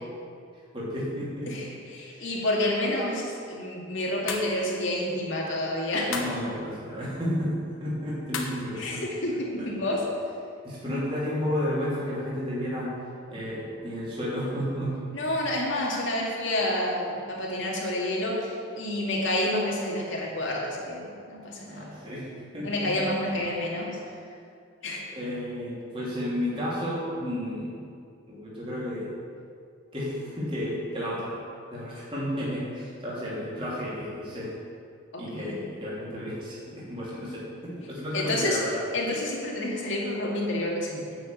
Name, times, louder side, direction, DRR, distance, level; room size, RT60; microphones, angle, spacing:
voice 1, 0.7-1.5 2.1-2.2 6.1-9.0 10.6-12.9 13.3-15.0 21.7-22.9 25.1-27.8 28.3-29.2 29.9-31.4 31.7-34.5 35.2-38.8, equal, 25° right, -7 dB, 3.1 m, -32 dB
voice 2, 1.5-6.1 8.8-10.0 15.1-21.9 22.6-24.0 24.8-25.0 35.1-35.6 38.1-38.6 38.9-41.1, left 1 dB, 70° left, -3 dB, 2.2 m, -29 dB
sound 1, 4.3-4.6 6.1-6.4 8.3-8.7, left 5 dB, 90° left, 1.2 m, -33 dB
9.2 x 6.3 x 7.9 m, 2.4 s
head